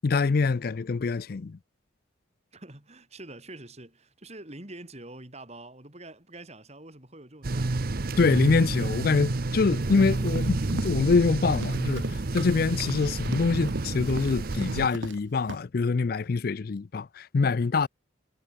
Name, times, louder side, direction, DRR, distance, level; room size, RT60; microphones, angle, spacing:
voice 1, 0.0-1.6 8.2-12.0 12.3-17.9, left 4 dB, 50° left, 0.4 m, -25 dB
voice 2, 2.5-7.9, right 2 dB, 35° right, 3.4 m, -45 dB
sound 1, 7.4-14.9, right 2 dB, 50° right, 0.8 m, -29 dB
Run, 10.0-15.2 15.5-15.6, right 1 dB, 75° right, 4.6 m, -40 dB
head